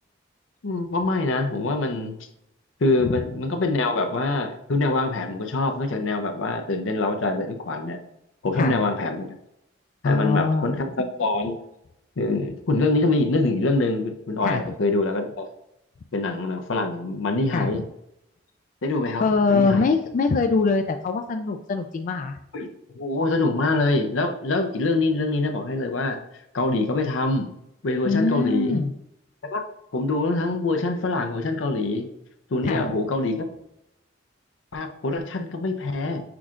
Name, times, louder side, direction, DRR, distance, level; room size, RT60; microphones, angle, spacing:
voice 1, 0.6-2.1 2.8-8.0 8.4-9.3 10.0-11.6 12.2-15.5 16.1-17.8 18.8-19.2 19.5-19.8 22.5-22.7 23.0-26.2 26.5-27.5 27.8-28.8 29.5-29.6 29.9-32.1 32.5-33.4 34.7-36.2, left 2 dB, 80° left, 5 dB, 0.6 m, -24 dB
voice 2, 10.0-10.8 14.4-14.6 17.5-17.8 19.2-22.4 28.0-28.9 32.6-32.9, left 4 dB, 45° left, 6 dB, 0.3 m, -23 dB
6.0 x 3.6 x 2.5 m, 0.82 s
head